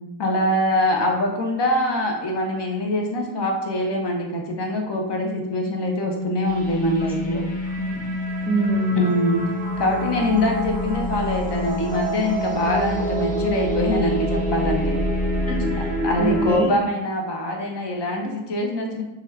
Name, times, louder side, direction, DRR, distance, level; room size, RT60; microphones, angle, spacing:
voice 1, 0.2-7.4 9.0-9.4 9.8-15.0 16.0-19.0, left 1 dB, 55° left, 1 dB, 0.7 m, -24 dB
Organ, 5.6-16.2, left 3 dB, 35° left, 1.1 m, -29 dB
sound 1, 6.5-16.6, right 1 dB, 15° left, 0.7 m, -28 dB
voice 2, 7.3-8.0 8.4-9.0 15.5-16.7, right 2 dB, 15° right, -3 dB, 0.4 m, -26 dB
3.0 x 2.4 x 3.1 m, 1.0 s
cardioid pair, 90°, 49 cm